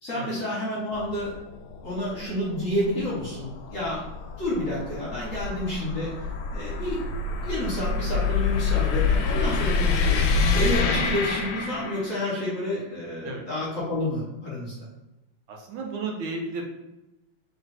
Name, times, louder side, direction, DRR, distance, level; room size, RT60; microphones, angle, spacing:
voice 1, 0.0-1.3 1.8-4.0 4.4-6.1 6.5-7.0 7.4-14.7, left 1 dB, 45° left, -6 dB, 1.2 m, -29 dB
sound 1, 0.9-12.3, left 4 dB, 75° left, 1.3 m, -27 dB
voice 2, 15.5-16.6, right 3 dB, 75° right, 0 dB, 1.5 m, -33 dB
3.3 x 3.1 x 3.9 m, 1.0 s
omnidirectional pair, 2.3 m